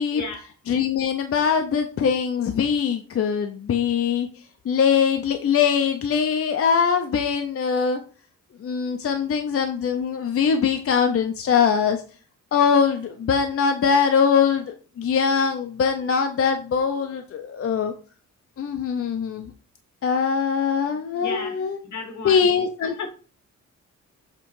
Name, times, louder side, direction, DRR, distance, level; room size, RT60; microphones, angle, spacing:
voice 1, 0.1-0.5 21.2-22.5 22.8-23.1, left 4 dB, 70° left, 1.9 m, -34 dB
voice 2, 0.7-4.3 4.7-8.0 8.6-12.0 12.5-17.9 18.6-19.5 20.0-21.8 22.2-22.9, left 6 dB, 50° left, 0.6 m, -22 dB
7.4 x 3.6 x 4.7 m
wide cardioid pair, 175°, 30 cm